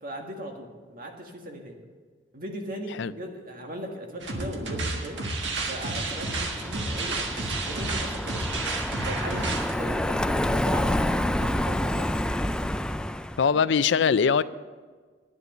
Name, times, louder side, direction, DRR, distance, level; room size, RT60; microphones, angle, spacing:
voice 1, 0.0-1.8 2.3-5.2 5.6-7.3 7.6-8.7 9.0-12.1 13.4-13.6, right 1 dB, 50° right, 1.8 m, -38 dB
sound 1, 4.2-9.7, right 3 dB, 80° right, 1.5 m, -31 dB
Car passing by, 4.9-13.5, left 1 dB, 5° left, 0.3 m, -29 dB
voice 2, 13.4-14.4, left 6 dB, 75° left, 0.4 m, -21 dB
11.0 x 9.8 x 6.6 m
head